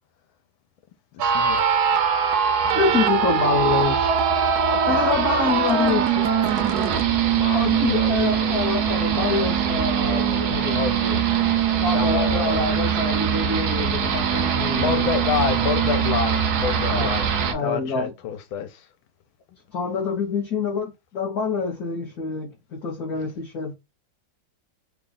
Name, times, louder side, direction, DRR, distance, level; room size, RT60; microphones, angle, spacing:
voice 1, 1.1-1.6 2.6-3.2 4.6-5.5 7.3-8.6 10.0-11.2 11.9-12.7 14.8-17.3 17.6-18.9, left 8 dB, 80° left, 1.4 m, -29 dB
sound 1, 1.2-17.5, right 7 dB, 70° right, 1.0 m, -22 dB
voice 2, 2.7-4.1 4.9-6.3 7.5-10.8 11.8-15.1 16.9-17.1 17.5-18.1 19.7-23.8, left 5 dB, 55° left, 1.2 m, -26 dB
3.5 x 2.3 x 3.8 m
omnidirectional pair, 2.2 m